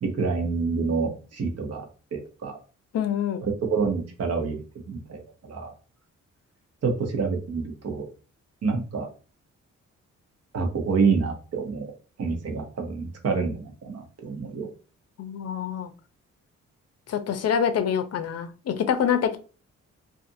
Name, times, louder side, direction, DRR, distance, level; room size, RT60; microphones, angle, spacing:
voice 1, 0.0-2.6 3.4-4.6 4.9-5.7 6.8-8.0 8.6-9.1 10.5-11.9 12.2-14.7, right 5 dB, 55° right, 3 dB, 0.9 m, -27 dB
voice 2, 2.9-3.4 15.2-15.9 17.1-19.4, left 8 dB, 55° left, 9 dB, 0.5 m, -26 dB
2.5 x 2.5 x 2.6 m, 0.36 s
cardioid pair, 70°, 30 cm